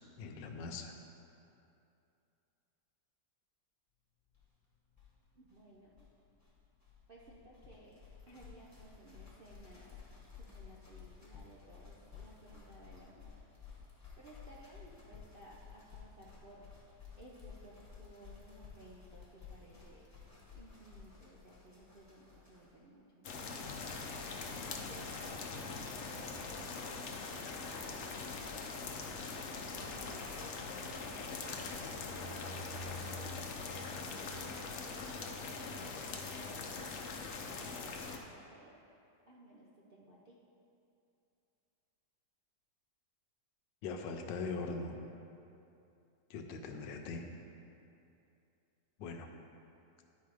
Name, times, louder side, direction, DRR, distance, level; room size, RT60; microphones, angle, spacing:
voice 1, 0.2-1.0 43.8-45.0 46.3-47.2 49.0-49.3, left 4 dB, 85° left, 4 dB, 1.4 m, -41 dB
sound 1, 4.3-4.4 4.6-4.7 4.9-22.8, left 6 dB, 10° left, 1.3 m, -55 dB
voice 2, 5.3-6.1 7.1-8.0 8.3-10.0 10.3-13.4 14.2-16.7 17.2-20.1 20.5-24.0 24.9-25.5 26.1-28.8 29.7-30.5 30.8-30.9 31.4-31.8 32.1-33.3 33.9-35.6 35.9-36.2 37.2-38.8 39.3-40.4, right 1 dB, 55° right, -5 dB, 0.6 m, -58 dB
sound 2, 23.2-38.2, left 4 dB, 60° left, 0.8 m, -42 dB
10.5 x 4.6 x 4.9 m, 2.7 s
omnidirectional pair, 1.9 m